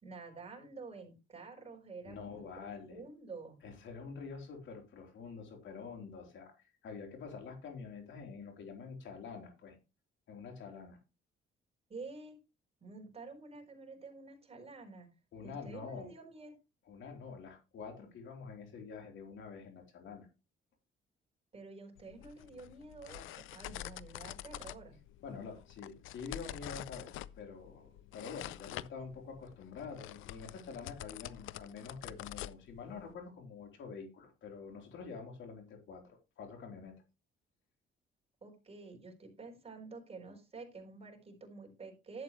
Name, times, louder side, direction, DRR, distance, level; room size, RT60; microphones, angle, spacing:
voice 1, 0.0-3.6 11.9-12.4 12.8-15.1 15.4-16.5 21.5-25.0 38.4-42.2, right 3 dB, 30° right, 2 dB, 4.2 m, -49 dB
voice 2, 2.0-3.0 3.6-9.8 10.3-11.0 15.3-16.1 16.9-20.3 25.2-37.0, left 5 dB, 70° left, 3 dB, 3.8 m, -47 dB
sound 1, 22.0-33.1, left 14 dB, 90° left, 0.5 m, -47 dB
11.5 x 8.3 x 3.1 m, 0.28 s
cardioid pair, 90°, 20 cm